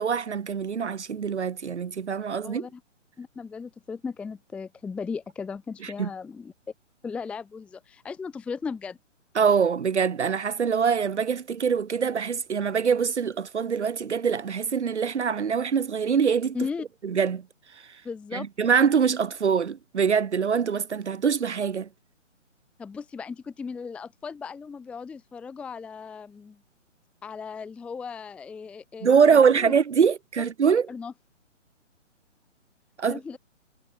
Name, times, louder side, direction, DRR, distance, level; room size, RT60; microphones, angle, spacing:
voice 1, 0.0-2.7 5.8-6.1 9.4-16.6 17.0-17.4 18.3-21.9 29.0-30.9 33.0-33.2, right 6 dB, 65° right, 0.8 m, -24 dB
voice 2, 2.4-2.8 3.2-6.5 7.0-9.0 16.5-16.8 18.0-18.5 22.8-26.6 27.2-29.7 30.9-31.1 33.0-33.4, left 5 dB, 5° left, 0.9 m, -36 dB
figure-of-eight pair, 135°, 38 cm